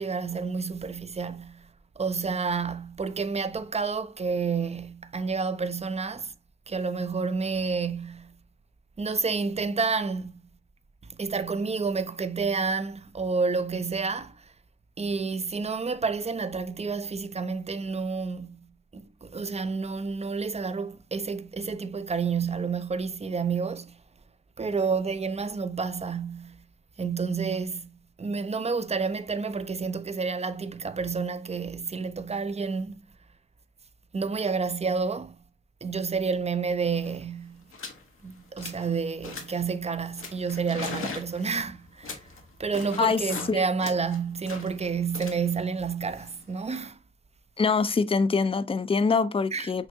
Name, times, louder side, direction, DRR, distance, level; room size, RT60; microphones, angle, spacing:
voice 1, 0.0-1.7 2.0-6.3 6.7-8.3 9.0-10.3 11.1-14.5 15.0-18.6 18.9-24.0 24.6-26.6 27.0-27.9 28.2-33.0 34.1-35.4 35.8-37.6 38.2-42.3 42.6-47.0 49.5-49.7, right 5 dB, 30° right, 0.4 m, -29 dB
sound 1, 36.7-36.8 36.9-37.2 37.7-38.0 38.4-38.9 39.2-39.7 40.2-43.5 43.8-46.8, left 4 dB, 90° left, 0.9 m, -40 dB
voice 2, 47.6-49.9, left 4 dB, 25° left, 0.4 m, -24 dB
5.9 x 2.6 x 2.6 m
cardioid pair, 45°, 21 cm